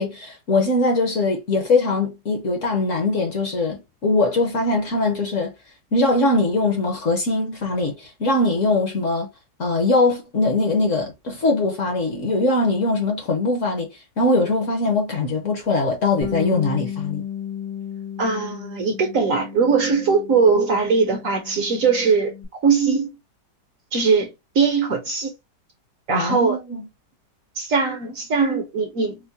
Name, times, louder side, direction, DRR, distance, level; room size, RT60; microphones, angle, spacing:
voice 1, 0.0-5.5 5.9-9.3 9.6-13.9 14.2-17.2 26.1-26.8, left 2 dB, 55° left, 1.0 m, -21 dB
Bass guitar, 16.2-22.5, left 8 dB, 85° left, 2.0 m, -34 dB
voice 2, 18.2-22.3 22.6-23.1 23.9-24.3 24.5-25.3 26.1-26.6 27.6-29.3, right 5 dB, 60° right, 1.0 m, -20 dB
4.4 x 2.0 x 2.6 m
omnidirectional pair, 1.9 m